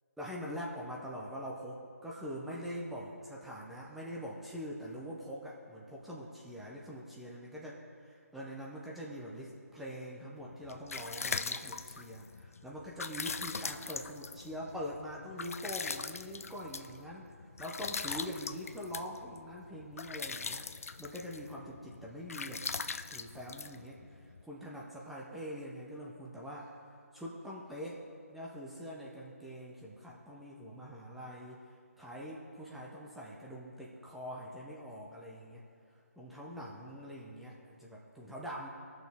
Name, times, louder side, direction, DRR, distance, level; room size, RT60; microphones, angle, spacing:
voice 1, 0.2-7.8 8.3-17.3 17.6-22.6 23.1-26.7 27.1-28.0 28.3-31.6 32.0-35.6 36.2-38.7, equal, ahead, -5 dB, 0.5 m, -44 dB
sound 1, 10.5-24.4, left 5 dB, 65° left, 0.4 m, -41 dB
17.5 x 6.3 x 3.4 m, 2.4 s
figure-of-eight pair, 160°, 8 cm